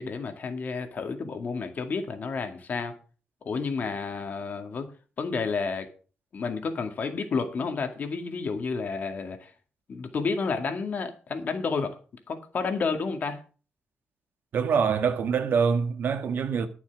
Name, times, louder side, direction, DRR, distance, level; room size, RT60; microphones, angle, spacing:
voice 1, 0.0-2.9 3.4-4.9 5.2-5.9 6.3-9.5 9.9-11.9 12.3-13.4, left 4 dB, 45° left, 2.0 m, -30 dB
voice 2, 14.5-16.7, right 6 dB, 60° right, 1.6 m, -25 dB
12.0 x 7.1 x 5.9 m
cardioid pair, 135°, 4 cm